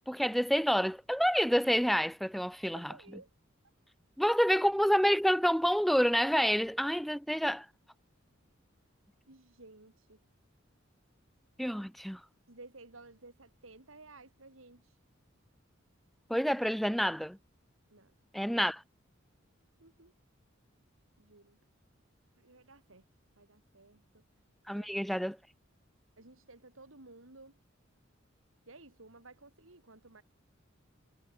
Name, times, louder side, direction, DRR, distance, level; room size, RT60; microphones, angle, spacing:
voice 1, 0.1-2.9 4.2-7.7 11.6-12.2 16.3-17.4 18.3-18.8 24.7-25.4, equal, ahead, 0.6 m, -28 dB
voice 2, 2.7-3.3 9.3-10.2 12.5-15.0 17.9-18.1 19.8-20.1 21.2-21.6 22.4-23.1 23.4-24.2 24.7-24.9 26.2-27.6 28.7-30.2, right 3 dB, 85° right, 3.3 m, -55 dB
head